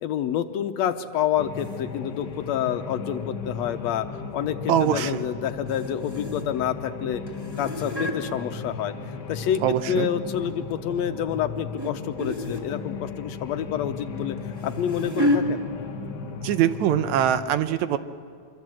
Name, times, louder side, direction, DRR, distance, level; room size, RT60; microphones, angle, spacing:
voice 1, 0.0-7.2 7.6-8.9 9.3-9.6 9.9-14.4 14.6-15.6, left 10 dB, 70° left, 8 dB, 1.9 m, -28 dB
sound 1, 1.4-17.4, left 4 dB, 50° left, 1.4 m, -36 dB
sound 2, 1.6-1.8 4.7-5.2 5.5-6.7 7.3-8.2 9.2-10.0 10.5-10.8 11.8-11.9 12.2-12.7 14.2-15.4 16.3-16.5 16.7-16.8 17.4-17.5, left 1 dB, 10° right, 1.8 m, -30 dB
voice 2, 4.7-5.2 9.6-10.1 16.4-18.0, right 10 dB, 75° right, 12 dB, 2.0 m, -23 dB
25.0 x 24.0 x 7.7 m, 2.2 s
omnidirectional pair, 3.4 m